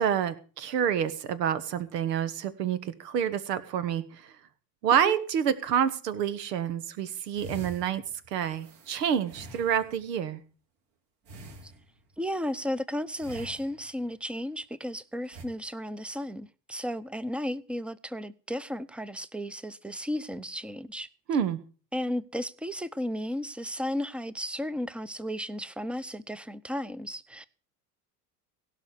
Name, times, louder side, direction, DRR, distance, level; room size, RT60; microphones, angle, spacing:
voice 1, 0.0-4.3 4.8-8.0 8.3-10.4 21.3-21.6, right 8 dB, 80° right, 1.5 m, -28 dB
sound 1, 7.3-10.1 11.2-12.2 13.2-14.1 15.3-15.4, right 1 dB, 55° right, 3.5 m, -46 dB
voice 2, 12.2-21.1 21.9-27.5, equal, ahead, 0.7 m, -34 dB
17.0 x 5.7 x 8.2 m
hypercardioid pair, 80°, 48 cm